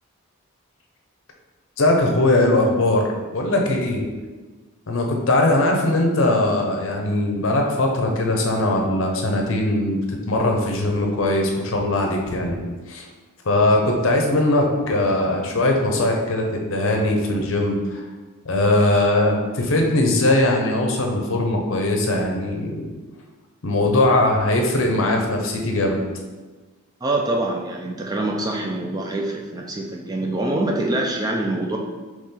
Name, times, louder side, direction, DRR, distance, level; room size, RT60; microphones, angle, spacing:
voice 1, 1.8-3.1 3.3-4.1 4.9-12.6 12.9-13.1 13.4-18.0 18.5-22.9 23.6-26.0, left 1 dB, 60° left, 1 dB, 0.7 m, -20 dB
voice 2, 27.0-31.8, right 2 dB, 15° right, 0 dB, 0.4 m, -25 dB
4.2 x 3.0 x 3.7 m, 1.3 s
head